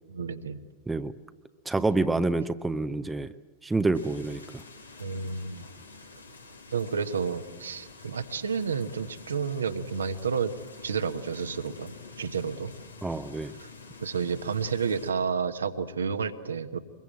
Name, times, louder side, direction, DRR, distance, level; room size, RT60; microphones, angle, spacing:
voice 1, 0.1-0.6 5.0-5.6 6.7-10.5 10.8-11.9 12.2-12.7 14.0-16.8, right 5 dB, 70° right, 8 dB, 1.2 m, -30 dB
voice 2, 1.7-3.3 3.6-4.6 13.0-13.6, right 3 dB, 10° right, 10 dB, 0.7 m, -27 dB
sound 1, 3.9-15.1, left 4 dB, 80° left, 1.9 m, -48 dB
23.5 x 22.0 x 8.9 m, 1.3 s
figure-of-eight pair, 90°, 0 cm